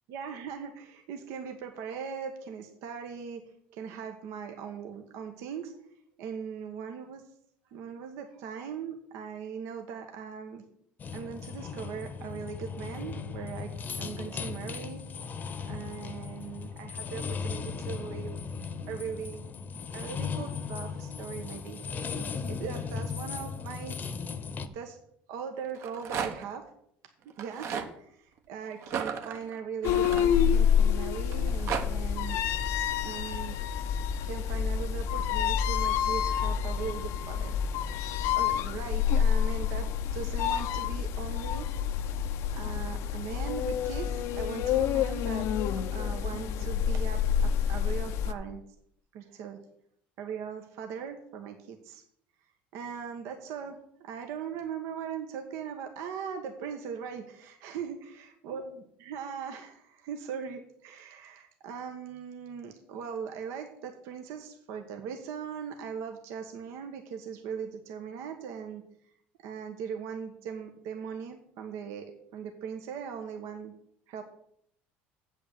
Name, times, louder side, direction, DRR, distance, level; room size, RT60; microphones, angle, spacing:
voice 1, 0.1-3.4 3.7-5.7 6.2-7.2 7.7-10.6 11.1-15.0 15.7-18.3 18.9-19.4 19.9-21.8 22.5-24.0 24.7-25.0 25.3-26.6 27.4-32.4 33.0-33.6 34.2-37.6 38.3-41.7 42.5-48.6 49.1-49.6 50.2-52.0 52.7-68.8 69.4-73.7 74.1-74.2, right 7 dB, 75° right, 5 dB, 1.3 m, -39 dB
sound 1, 11.0-24.7, left 5 dB, 35° left, 0.9 m, -37 dB
Rattle, 25.7-26.6 27.3-27.9 28.8-30.8 31.3-31.8, right 7 dB, 60° right, 1.3 m, -34 dB
sound 2, 29.8-48.3, left 8 dB, 70° left, 0.7 m, -28 dB
8.1 x 5.7 x 7.6 m, 0.70 s
supercardioid pair, 100°, 5 cm